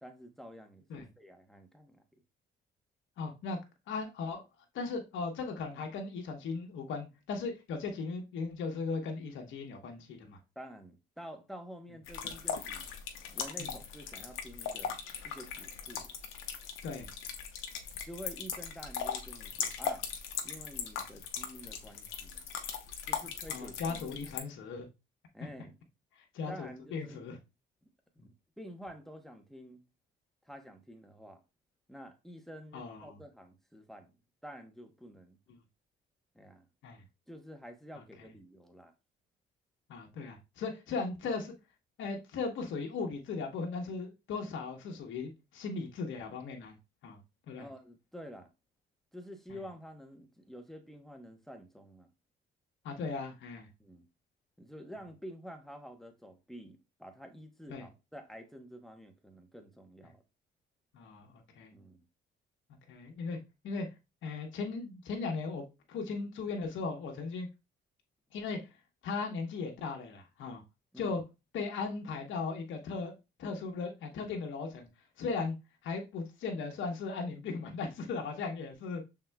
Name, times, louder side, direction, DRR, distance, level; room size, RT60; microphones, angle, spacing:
voice 1, 0.0-2.0 10.6-12.9 13.3-15.0 15.2-16.1 18.1-20.0 20.4-22.4 23.1-24.3 25.3-25.8 26.5-27.2 28.2-29.8 30.4-31.4 31.9-34.1 34.4-35.4 36.3-36.7 37.3-38.9 47.6-48.5 49.1-52.1 53.8-54.1 54.6-60.2 61.7-62.1 70.9-71.2, equal, ahead, 0.9 m, -49 dB
voice 2, 3.2-3.6 3.9-4.4 4.7-10.4 13.6-13.7 16.8-17.1 23.5-24.9 26.3-27.4 32.7-33.2 36.8-37.0 39.9-41.5 42.0-46.7 47.0-47.2 47.5-47.7 52.8-53.7 57.7-57.8 60.9-61.7 62.9-63.4 63.6-63.9 64.2-67.5 68.3-68.6 69.0-70.6 71.0-71.2 71.5-73.1 73.4-74.9 75.2-75.6 75.8-79.0, left 4 dB, 75° left, 1.1 m, -37 dB
sound 1, 12.1-24.4, left 7 dB, 90° left, 0.7 m, -39 dB
5.9 x 3.7 x 2.2 m
cardioid pair, 90°, 20 cm